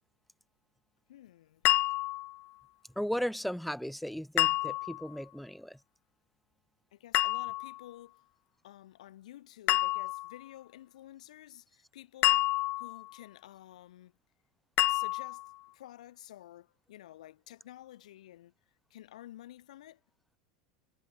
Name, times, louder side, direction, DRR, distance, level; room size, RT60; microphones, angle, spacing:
voice 1, 1.1-1.6 6.9-8.2 8.6-12.4 12.8-14.1 14.9-18.5 18.9-20.0, left 13 dB, 75° left, 4.5 m, -51 dB
sound 1, 1.6-2.4 4.4-5.1 7.1-7.8 9.7-10.4 12.2-13.1 14.8-15.5, left 19 dB, 50° left, 0.7 m, -28 dB
voice 2, 3.0-5.8, equal, ahead, 2.6 m, -36 dB
hypercardioid pair, 90°, 4 cm